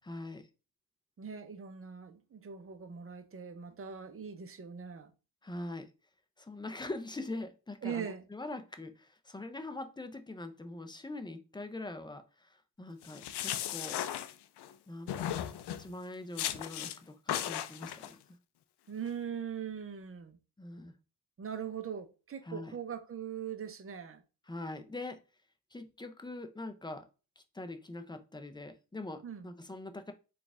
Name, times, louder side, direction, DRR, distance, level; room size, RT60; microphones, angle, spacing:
voice 1, 0.0-0.5 5.4-5.9 6.4-14.0 14.9-15.4 15.8-18.2 20.6-20.9 22.4-22.7 24.5-25.2 25.7-27.1 27.4-30.1, left 2 dB, 10° left, 0.5 m, -43 dB
voice 2, 1.2-5.1 7.8-8.2 18.9-20.4 21.4-24.2 29.2-29.5, right 7 dB, 30° right, 0.7 m, -41 dB
sound 1, 13.0-14.7 15.1-15.9 16.4-17.0 17.3-18.1, left 11 dB, 65° left, 0.5 m, -36 dB
3.9 x 2.5 x 3.4 m
cardioid pair, 85°, 42 cm